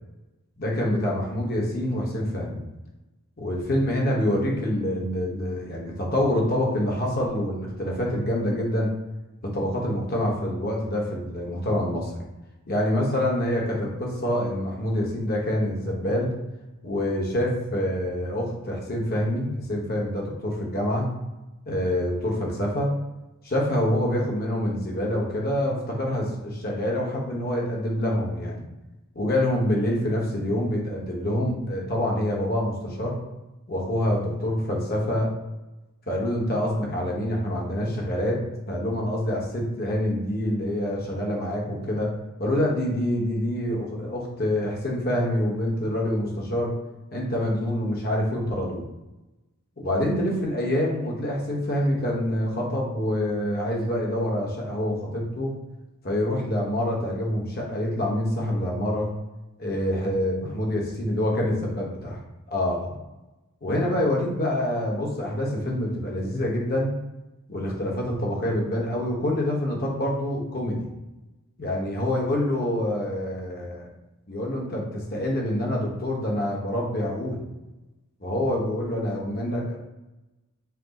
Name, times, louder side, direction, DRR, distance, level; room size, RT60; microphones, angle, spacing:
voice 1, 0.6-2.6 3.4-8.9 9.5-12.3 12.7-16.3 16.8-21.1 21.7-22.9 23.4-28.6 29.1-33.2 33.7-35.3 36.1-38.4 38.7-42.1 42.4-46.7 47.1-48.8 49.8-55.5 56.0-59.1 59.6-62.2 62.5-62.9 63.6-66.9 67.5-70.8 71.6-73.9 74.3-77.4 78.2-79.8, left 1 dB, 45° left, -2 dB, 1.0 m, -26 dB
5.8 x 2.0 x 4.0 m, 1.0 s
head